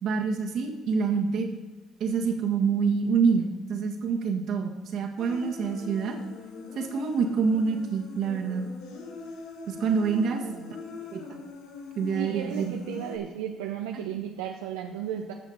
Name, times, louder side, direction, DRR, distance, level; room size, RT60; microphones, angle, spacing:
voice 1, 0.0-1.5 2.0-6.2 6.7-8.7 9.7-10.4 11.1-11.4 11.9-13.0, right 5 dB, 65° right, 3 dB, 1.7 m, -27 dB
Human voice, 5.2-13.2, left 3 dB, 80° left, 1.3 m, -42 dB
voice 2, 10.1-10.7 12.1-15.3, right 9 dB, 90° right, 2 dB, 0.6 m, -35 dB
14.5 x 6.3 x 4.4 m, 1.2 s
supercardioid pair, 70°, 0 cm